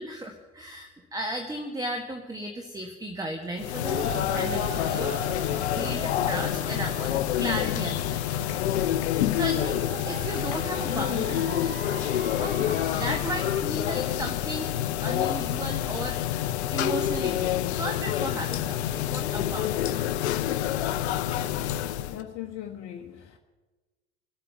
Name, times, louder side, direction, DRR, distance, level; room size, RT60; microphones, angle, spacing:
voice 1, 0.0-5.2 5.7-8.2 9.3-11.8 12.4-14.7 15.0-16.2 16.7-20.0, right 1 dB, 10° right, 4 dB, 1.4 m, -35 dB
sound 1, 3.6-22.2, left 12 dB, 70° left, 0.6 m, -27 dB
sound 2, 3.9-13.6, right 8 dB, 30° right, 0.8 m, -41 dB
voice 2, 22.0-23.4, left 11 dB, 50° left, 2 dB, 1.1 m, -39 dB
23.0 x 8.3 x 5.7 m, 1.2 s
figure-of-eight pair, 65°, 34 cm